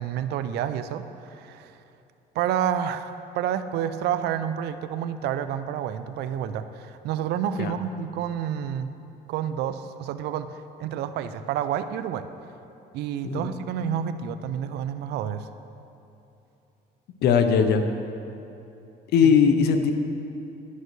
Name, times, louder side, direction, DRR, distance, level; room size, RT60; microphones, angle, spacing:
voice 1, 0.0-1.8 2.3-3.1 3.3-8.9 9.3-12.3 12.9-15.5 19.2-19.3, right 9 dB, 75° right, 11 dB, 0.4 m, -29 dB
voice 2, 17.2-17.8 19.1-19.9, left 6 dB, 75° left, 7 dB, 0.6 m, -19 dB
11.0 x 6.5 x 3.1 m, 2.8 s
cardioid pair, 110°, 17 cm